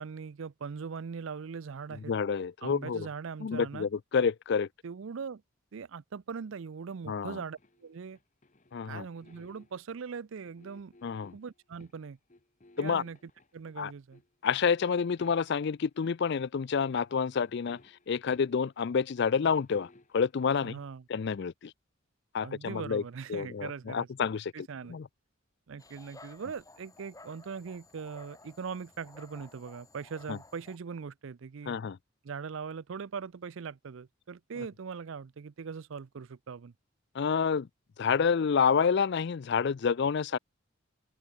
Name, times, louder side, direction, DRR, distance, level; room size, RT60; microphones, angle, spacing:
voice 1, 0.0-2.1 2.6-3.9 4.8-5.4 5.7-8.2 8.8-10.9 11.3-12.2 12.8-14.2 20.6-21.0 22.4-24.1 24.5-25.0 25.7-31.8 32.2-36.7, right 5 dB, 65° right, 0.5 m, -41 dB
voice 2, 2.1-3.1 3.4-4.7 7.1-7.4 8.7-9.1 11.0-11.3 12.8-13.0 13.8-13.9 14.4-17.8 18.1-20.7 21.1-21.7 22.3-23.0 23.3-24.5 24.9-25.1 30.3-30.4 31.7-32.0 37.1-37.7 38.0-40.4, left 6 dB, 50° left, 0.4 m, -28 dB
sound 1, 7.6-9.9 10.4-12.0 12.3-13.8 14.1-14.3 14.7-15.9 16.4-16.5 16.7-18.9 19.2-20.8, left 2 dB, 35° left, 1.2 m, -59 dB
Dog, 25.8-30.8, left 2 dB, 15° left, 3.0 m, -55 dB
head